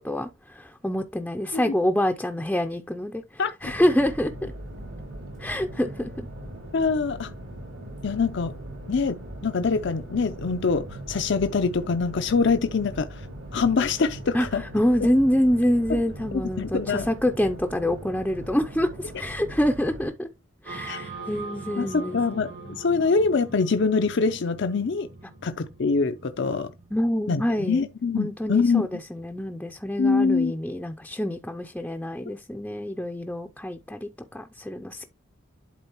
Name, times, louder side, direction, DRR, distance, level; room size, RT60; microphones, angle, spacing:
voice 1, 0.0-3.2 3.6-4.5 5.4-6.3 14.3-20.3 20.6-22.2 26.9-27.8 28.2-35.1, equal, 5° left, 0.5 m, -26 dB
sound 1, 3.6-20.1, right 1 dB, 90° right, 4.3 m, -40 dB
voice 2, 6.7-7.3 8.0-8.5 8.9-13.2 13.5-14.6 15.9-16.0 16.3-17.1 20.9-21.0 21.8-25.1 25.4-26.7 27.3-28.8 30.0-30.5, left 4 dB, 65° left, 0.5 m, -24 dB
sound 2, 20.6-30.3, right 3 dB, 70° right, 4.5 m, -43 dB
11.5 x 3.9 x 2.9 m
head